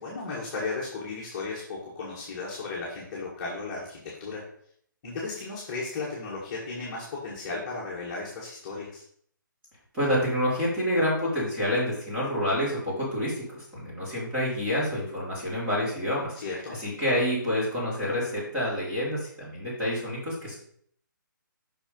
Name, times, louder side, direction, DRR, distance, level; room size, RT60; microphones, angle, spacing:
voice 1, 0.0-4.4 5.0-9.0 16.3-16.7, left 3 dB, 20° left, -6 dB, 1.7 m, -35 dB
voice 2, 9.9-16.3 16.7-20.5, equal, 10° right, -8 dB, 3.2 m, -28 dB
5.9 x 4.8 x 5.3 m, 0.62 s
hypercardioid pair, 165°, 11 cm